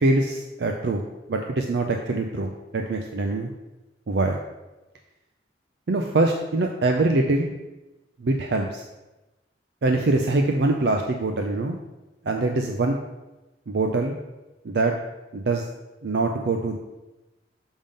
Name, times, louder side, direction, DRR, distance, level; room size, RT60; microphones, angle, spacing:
voice 1, 0.0-3.5 4.1-4.4 5.9-7.5 8.2-8.8 9.8-11.8 12.2-13.0 13.7-14.1 14.6-15.0 15.3-15.7 16.0-16.8, right 2 dB, 65° right, 3 dB, 0.5 m, -23 dB
7.0 x 3.6 x 5.2 m, 1.1 s
head